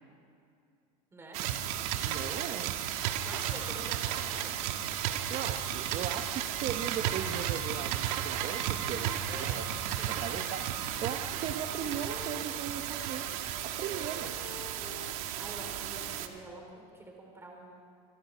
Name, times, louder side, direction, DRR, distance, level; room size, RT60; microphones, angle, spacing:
sound 1, 1.3-16.3, right 10 dB, 65° right, 1.9 m, -34 dB
voice 1, 2.0-2.8 5.3-9.6 10.0-13.2 13.6-14.4, right 9 dB, 35° right, 7 dB, 0.9 m, -38 dB
voice 2, 3.2-4.5 9.3-9.6 10.0-10.2 15.1-17.8, right 2 dB, 10° right, 0 dB, 4.7 m, -47 dB
Wind instrument woodwind instrument, 10.8-16.3, left 6 dB, 40° left, 2.7 m, -50 dB
26.5 x 26.5 x 5.1 m, 2.4 s
supercardioid pair, 145°, 20 cm